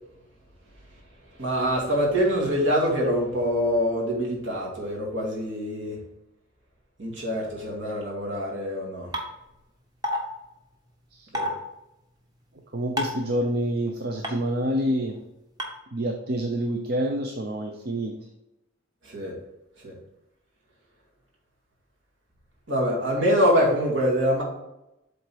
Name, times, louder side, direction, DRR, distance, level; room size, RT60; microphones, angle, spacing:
voice 1, 1.4-6.0 7.0-9.1 11.3-11.5 19.0-19.4 19.8-19.9 22.7-24.4, equal, 70° right, -3 dB, 2.3 m, -25 dB
sound 1, 9.1-9.2 10.0-10.2 11.3-11.5 13.0-13.2 14.2-14.3 15.6-15.7, left 1 dB, 20° right, 1.0 m, -26 dB
voice 2, 12.7-15.1 15.9-18.1, right 1 dB, 50° right, 3 dB, 0.6 m, -27 dB
7.8 x 3.9 x 4.6 m, 0.90 s
head